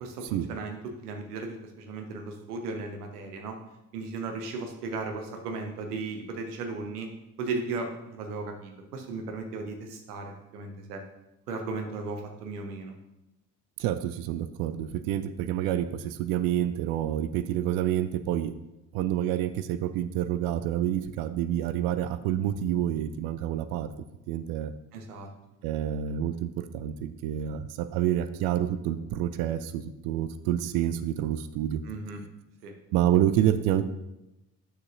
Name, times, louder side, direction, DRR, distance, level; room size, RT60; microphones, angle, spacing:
voice 1, 0.0-3.6 3.9-7.1 7.4-11.0 11.5-12.9 24.9-25.3 31.8-32.2 32.6-32.7, right 3 dB, 70° right, 4 dB, 1.1 m, -36 dB
voice 2, 13.8-18.5 18.9-23.9 24.3-24.7 25.6-31.8 32.9-33.9, right 11 dB, 50° right, 12 dB, 0.5 m, -28 dB
9.5 x 6.7 x 2.5 m, 0.92 s
figure-of-eight pair, 50°, 48 cm